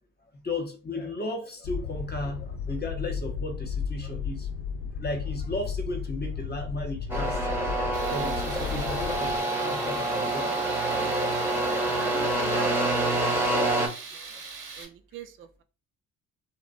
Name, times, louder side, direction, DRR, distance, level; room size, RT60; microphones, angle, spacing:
voice 1, 0.4-4.5 5.0-7.8 8.1-10.6 14.3-14.4, left 2 dB, 25° left, 0.7 m, -35 dB
sound 1, 1.6-9.4, left 6 dB, 65° left, 0.5 m, -34 dB
sound 2, 7.1-13.9, right 2 dB, 5° right, 0.8 m, -27 dB
Tools, 7.9-14.8, right 4 dB, 55° right, 0.7 m, -41 dB
voice 2, 12.0-13.5 14.8-15.6, right 8 dB, 35° right, 0.4 m, -43 dB
2.5 x 2.1 x 2.5 m
hypercardioid pair, 45°, 40 cm